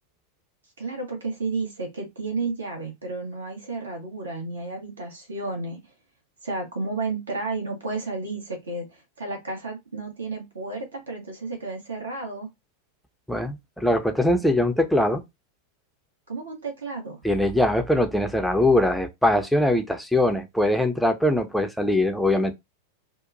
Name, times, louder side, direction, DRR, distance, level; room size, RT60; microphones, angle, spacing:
voice 1, 0.8-5.8 6.4-12.5 16.3-17.2, right 3 dB, 70° right, 1.1 m, -32 dB
voice 2, 13.3-15.2 17.2-22.5, left 1 dB, ahead, 0.5 m, -22 dB
4.3 x 2.1 x 2.6 m
figure-of-eight pair, 90°, 0 cm